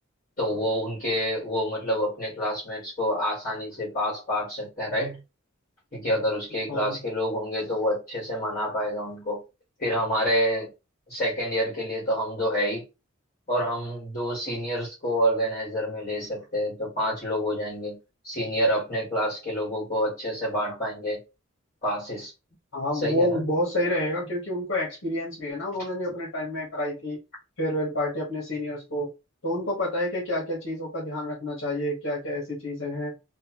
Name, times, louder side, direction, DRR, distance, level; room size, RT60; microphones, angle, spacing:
voice 1, 0.4-5.2 5.9-9.4 9.8-10.7 11.1-12.8 13.5-18.0 18.2-21.2 21.8-22.3 22.9-23.4, equal, 35° left, 1.6 m, -28 dB
voice 2, 22.7-27.2 27.6-29.1 29.4-33.1, left 1 dB, 65° left, 1.3 m, -29 dB
3.0 x 2.3 x 2.9 m
head